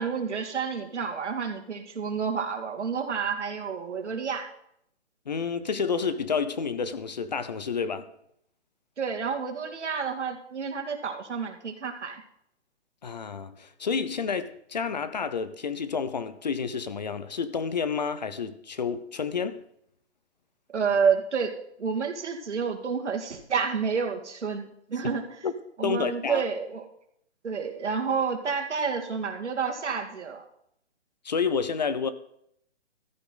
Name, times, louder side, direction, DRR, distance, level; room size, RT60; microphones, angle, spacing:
voice 1, 0.0-4.5 9.0-12.2 20.7-21.5 21.8-25.4 25.8-26.8 27.4-30.4, right 6 dB, 75° right, 2.6 m, -29 dB
voice 2, 5.3-8.1 13.0-19.6 25.4-25.5 25.8-26.4 31.2-32.1, left 5 dB, 40° left, 0.8 m, -29 dB
15.0 x 13.5 x 4.0 m
hypercardioid pair, 175°, 35 cm